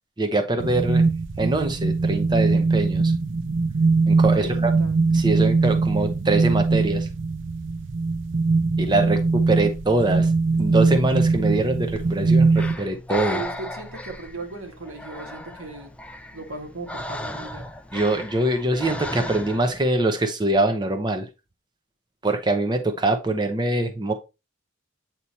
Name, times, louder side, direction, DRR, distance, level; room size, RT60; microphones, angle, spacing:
voice 1, 0.2-1.0 1.4-3.1 4.1-4.7 5.1-7.1 8.8-10.3 10.6-13.4 17.9-21.3 22.2-24.1, right 2 dB, 20° right, 0.7 m, -23 dB
sound 1, 0.6-12.7, right 3 dB, 60° right, 0.5 m, -21 dB
voice 2, 4.3-5.0 13.3-15.9 16.3-17.7, right 3 dB, 90° right, 1.9 m, -37 dB
Breathing, 11.9-19.8, left 1 dB, 5° left, 0.4 m, -35 dB
8.3 x 3.0 x 4.1 m
head